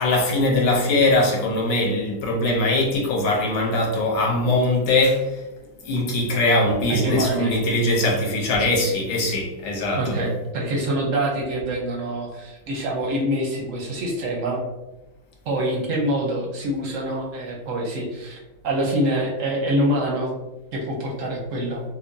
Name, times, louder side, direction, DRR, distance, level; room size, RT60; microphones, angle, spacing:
voice 1, 0.0-5.4 5.8-10.2, left 2 dB, 90° left, -1 dB, 1.6 m, -21 dB
voice 2, 6.9-7.5 9.9-14.6 15.5-18.4 18.6-20.3 20.7-21.8, right 1 dB, 60° right, -1 dB, 0.8 m, -25 dB
5.7 x 2.0 x 2.7 m, 1.0 s
omnidirectional pair, 2.0 m